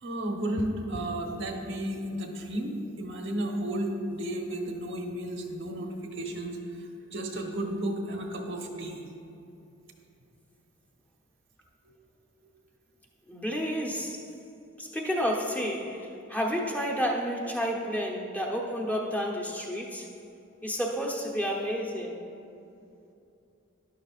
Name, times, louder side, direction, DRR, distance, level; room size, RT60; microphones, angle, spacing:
voice 1, 0.0-6.8 7.1-9.0, right 1 dB, 60° right, 1 dB, 1.1 m, -33 dB
voice 2, 13.3-14.3 14.8-20.1 20.6-22.2, equal, 5° left, -2 dB, 0.9 m, -30 dB
12.5 x 11.0 x 2.5 m, 2.7 s
head